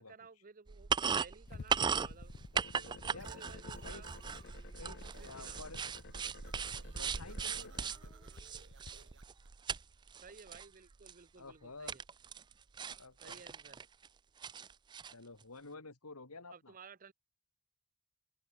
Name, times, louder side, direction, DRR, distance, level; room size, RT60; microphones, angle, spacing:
voice 1, 0.0-2.3 2.8-4.1 5.2-5.7 10.1-12.0 13.2-13.9 16.5-17.1, right 5 dB, 40° right, 0.7 m, -56 dB
sound 1, 0.7-9.8 10.1-10.7 11.1-11.2 11.9-12.5 12.8-14.1 14.4-15.1, right 6 dB, 20° right, 0.3 m, -38 dB
sound 2, 1.5-8.9, left 5 dB, 50° left, 0.4 m, -52 dB
sound 3, 3.2-4.7 5.0-5.6 5.9-9.5, right 5 dB, 55° right, 5.5 m, -62 dB
voice 2, 4.8-5.8 7.0-8.1 11.4-12.0 13.0-13.4 15.1-16.7, left 3 dB, 90° left, 3.1 m, -51 dB
open air
head